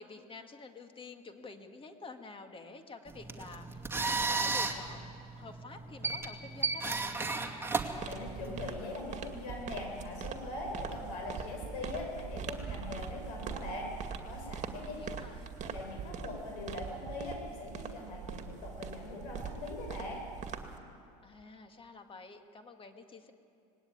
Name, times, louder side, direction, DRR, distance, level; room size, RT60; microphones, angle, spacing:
voice 1, 0.0-5.1 5.3-7.0 14.8-15.6 21.2-23.3, left 3 dB, 25° left, 6 dB, 1.9 m, -49 dB
sound 1, 3.1-8.7, right 4 dB, 10° right, 2.3 m, -34 dB
sound 2, 7.8-20.8, right 6 dB, 40° right, 2.3 m, -42 dB
voice 2, 8.1-13.9 14.2-15.0 15.6-20.2, left 2 dB, 75° left, 1 dB, 7.2 m, -41 dB
19.5 x 17.5 x 9.5 m, 2.5 s
hypercardioid pair, 90°, 19 cm